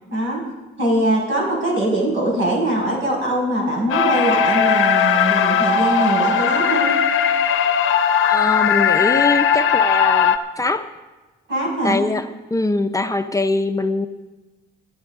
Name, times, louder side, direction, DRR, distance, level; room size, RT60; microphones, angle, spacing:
voice 1, 0.1-0.4 0.8-6.9 11.5-12.0, right 1 dB, 75° right, -3 dB, 5.9 m, -22 dB
sound 1, 3.9-10.4, left 7 dB, 85° left, 0.8 m, -18 dB
voice 2, 8.3-10.9 11.8-12.3 12.5-14.1, left 2 dB, 15° left, 7 dB, 0.6 m, -22 dB
24.5 x 8.8 x 3.7 m, 1.2 s
cardioid pair, 90°, 20 cm